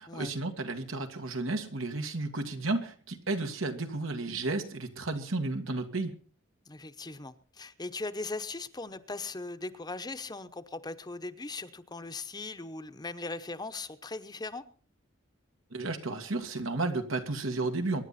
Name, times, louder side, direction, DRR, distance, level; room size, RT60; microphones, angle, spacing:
voice 1, 0.0-6.1 15.7-18.0, right 2 dB, 90° right, 6 dB, 2.1 m, -32 dB
voice 2, 6.7-14.6, left 3 dB, 20° left, 11 dB, 0.8 m, -39 dB
24.0 x 10.5 x 4.2 m, 0.41 s
head